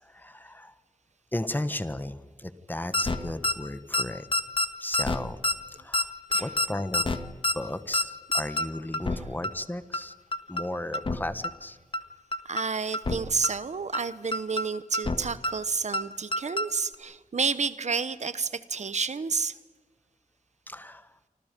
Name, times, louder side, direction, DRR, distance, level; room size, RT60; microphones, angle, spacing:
voice 1, 0.1-0.7 1.3-4.3 4.8-5.4 5.8-6.1 6.4-7.1 7.5-10.1 10.5-11.8 20.7-21.2, left 1 dB, 15° left, 12 dB, 1.2 m, -35 dB
sound 1, 2.9-3.2 3.4-3.5 3.9-4.0 4.3-4.7 4.9-5.2 5.4-5.5 5.9-6.0 6.3-6.7 6.9-7.2 7.4-7.5 7.9-8.0 8.3-8.7 8.9-9.2 9.4-9.5 9.9-10.0 10.3-10.6 10.9-11.2 11.4-11.5 11.9-12.0 12.3-12.6 12.9-13.2 13.4-13.5 13.9-14.0 14.3-14.7 14.9-15.2 15.4-15.5 15.9-16.0 16.3-16.7 16.9-17.0, left 2 dB, 40° left, 1.6 m, -26 dB
voice 2, 12.4-19.6, right 5 dB, 55° right, 14 dB, 1.0 m, -30 dB
29.0 x 25.5 x 5.3 m, 1.4 s
wide cardioid pair, 120°, 14 cm